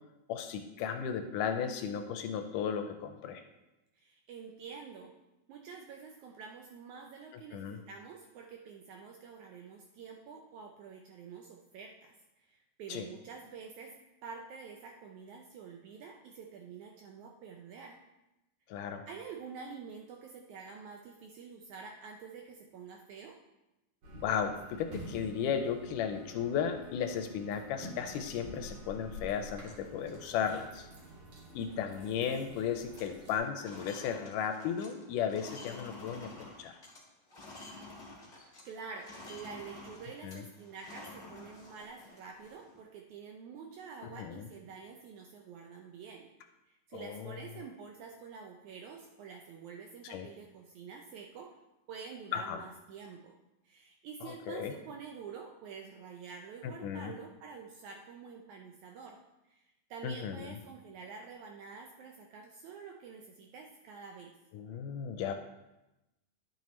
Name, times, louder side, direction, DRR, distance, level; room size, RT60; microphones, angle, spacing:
voice 1, 0.3-3.4 7.5-7.8 12.9-13.1 18.7-19.1 24.2-30.9 31.5-36.8 40.2-40.4 44.2-44.5 46.9-47.4 50.0-50.3 52.3-52.6 54.2-54.7 56.6-57.1 60.0-60.6 64.5-65.3, left 7 dB, 80° left, 6 dB, 2.0 m, -35 dB
voice 2, 4.0-5.1 5.5-12.1 12.4-18.0 19.1-23.4 38.4-46.3 46.7-51.5 51.9-53.4 53.6-59.2 59.5-64.3, right 5 dB, 80° right, 2 dB, 1.7 m, -48 dB
sound 1, 24.0-33.4, equal, 60° right, 3.3 m, -49 dB
sound 2, 27.7-28.8 29.3-29.4 29.6-30.0 30.4-30.6 30.9-32.0 32.2-32.5 32.7-38.7 38.9-42.8, left 2 dB, 30° left, 0.8 m, -51 dB
11.0 x 7.3 x 3.1 m, 0.96 s
omnidirectional pair, 4.0 m